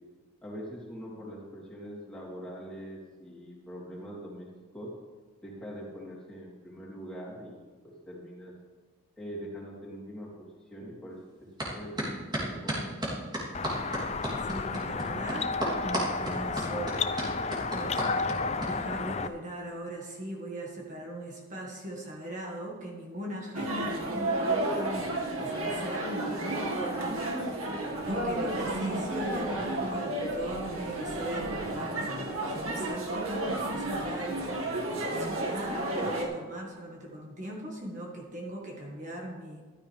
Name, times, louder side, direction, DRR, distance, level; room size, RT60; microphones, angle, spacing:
voice 1, 0.4-4.9 5.4-7.6 7.8-8.5 9.2-10.5 10.7-12.0 12.4-12.9, equal, 5° left, -7 dB, 3.7 m, -43 dB
sound 1, 11.6-11.7 12.0-18.7, right 1 dB, 20° right, 3.2 m, -32 dB
sound 2, 13.5-19.3, left 4 dB, 30° left, 0.5 m, -32 dB
voice 2, 14.5-15.5 15.8-31.5 31.7-34.7 35.0-39.6, right 1 dB, 35° right, -2 dB, 2.0 m, -39 dB
sound 3, 23.5-36.2, right 1 dB, 85° right, 2.1 m, -32 dB
14.5 x 13.0 x 3.5 m, 1.4 s
head